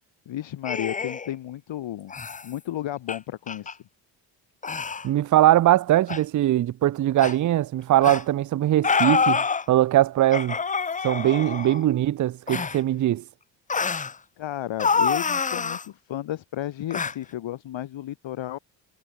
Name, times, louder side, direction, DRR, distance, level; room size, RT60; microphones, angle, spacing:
voice 1, 0.3-2.1 2.4-3.8 13.7-14.0 14.4-18.6, left 13 dB, 60° left, 4.0 m, -33 dB
sound 1, 0.6-1.3 2.1-2.4 3.1-3.2 3.5-3.7 4.6-5.1 6.1-6.2 7.2-7.3 8.0-8.2 8.8-9.6 10.3-11.8 12.5-12.8 13.7-14.1 14.8-15.8 16.9-17.1, left 5 dB, 15° left, 0.6 m, -26 dB
voice 2, 5.0-10.6 11.0-13.2, right 13 dB, 40° right, 0.6 m, -21 dB
supercardioid pair, 70°, 50 cm